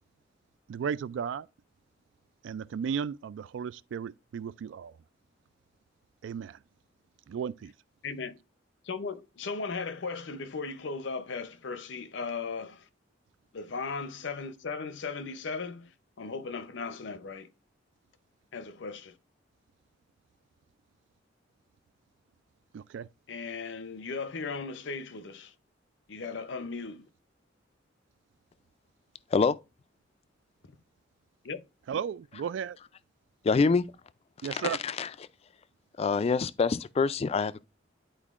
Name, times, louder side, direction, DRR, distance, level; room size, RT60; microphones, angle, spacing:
voice 1, 0.7-1.5 2.4-4.9 6.2-6.6 7.3-7.7 22.7-23.1 31.9-32.8 34.4-34.8, right 7 dB, 75° right, 0.3 m, -34 dB
voice 2, 8.0-8.4 8.8-12.9 13.5-17.5 18.5-19.2 23.3-25.5 26.1-27.0 31.4-31.6, left 4 dB, 70° left, 0.6 m, -37 dB
voice 3, 33.4-33.9 34.5-35.1 36.0-37.7, left 4 dB, 35° left, 0.3 m, -26 dB
10.5 x 4.4 x 2.4 m
head